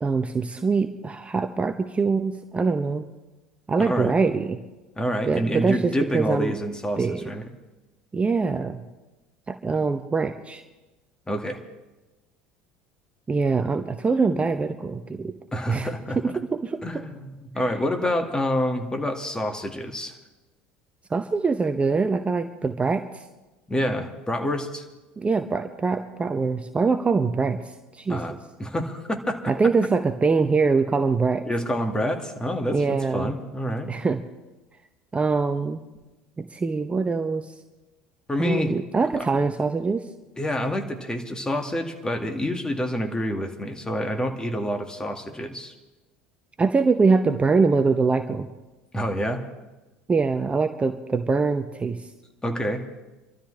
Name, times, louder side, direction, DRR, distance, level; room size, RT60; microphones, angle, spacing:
voice 1, 0.0-3.0 3.7-4.6 5.3-6.5 7.0-7.3 8.1-8.8 9.5-10.6 13.3-15.3 15.7-15.9 16.2-17.0 21.1-23.2 25.2-28.2 29.5-31.5 32.7-33.3 33.9-34.2 35.1-35.8 36.4-37.5 38.4-40.0 46.6-48.5 50.1-52.1, right 4 dB, 20° right, 8 dB, 0.8 m, -23 dB
voice 2, 3.8-4.1 5.0-7.5 11.3-11.6 15.5-16.2 16.8-20.2 23.7-24.8 28.1-28.3 28.6-29.5 31.5-33.9 38.3-38.7 39.2-39.3 40.4-45.7 48.9-49.4 52.4-52.8, equal, 15° left, 5 dB, 1.9 m, -27 dB
27.0 x 13.0 x 3.3 m, 1.1 s
hypercardioid pair, 70°, 6 cm